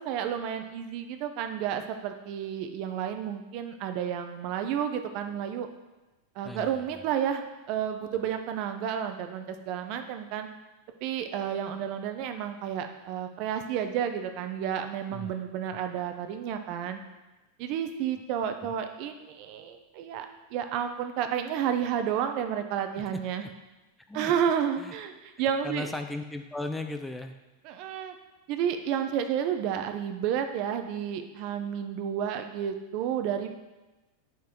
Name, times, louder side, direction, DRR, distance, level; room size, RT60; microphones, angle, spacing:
voice 1, 0.0-5.7 6.4-10.5 11.0-17.0 17.6-23.4 24.1-25.9 27.6-28.1 28.5-33.5, right 9 dB, 50° right, 7 dB, 0.8 m, -31 dB
voice 2, 6.4-7.0 15.1-15.3 18.6-18.7 23.4-23.5 24.1-24.3 24.8-24.9 25.6-27.4, left 2 dB, 5° left, 6 dB, 0.5 m, -37 dB
7.4 x 5.5 x 4.5 m, 1.1 s
supercardioid pair, 125°, 0 cm